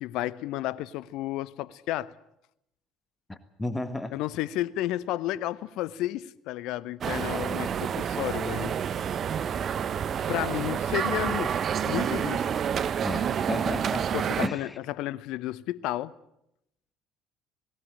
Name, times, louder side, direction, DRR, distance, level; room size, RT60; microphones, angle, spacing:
voice 1, 0.0-2.1 4.1-8.7 10.3-11.6 11.8-12.5 14.1-16.1, left 15 dB, 60° left, 0.7 m, -32 dB
voice 2, 3.3-4.2 13.0-14.1 14.4-14.8, left 2 dB, 15° left, 1.7 m, -33 dB
sound 1, 7.0-14.5, right 8 dB, 45° right, 0.9 m, -29 dB
18.5 x 18.5 x 8.9 m
figure-of-eight pair, 55°, 0 cm